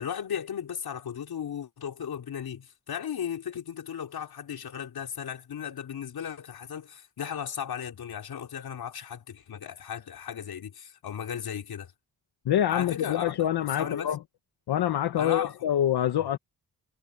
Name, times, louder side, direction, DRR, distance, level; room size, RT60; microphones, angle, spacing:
voice 1, 0.0-11.9 12.7-13.5 13.8-14.2 15.2-15.5 16.2-16.3, left 8 dB, 70° left, 3.8 m, -36 dB
voice 2, 12.4-14.2 14.7-16.4, left 11 dB, 90° left, 1.4 m, -26 dB
cardioid pair, 70°, 38 cm